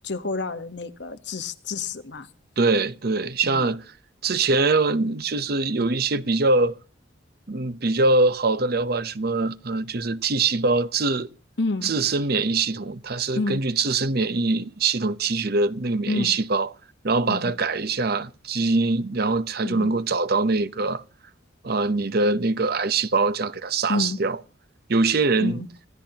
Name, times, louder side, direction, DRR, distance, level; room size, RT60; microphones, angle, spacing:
voice 1, 0.0-2.3 3.4-3.7 11.6-11.9 13.4-13.6 16.1-16.3 17.3-17.5 19.6-19.9 23.9-24.2 25.4-25.7, left 3 dB, 60° left, 1.2 m, -29 dB
voice 2, 2.6-3.8 4.2-6.8 7.5-11.3 11.8-16.7 17.0-21.0 21.6-24.4 24.9-25.6, right 3 dB, 55° right, 0.8 m, -23 dB
26.5 x 15.0 x 2.9 m
head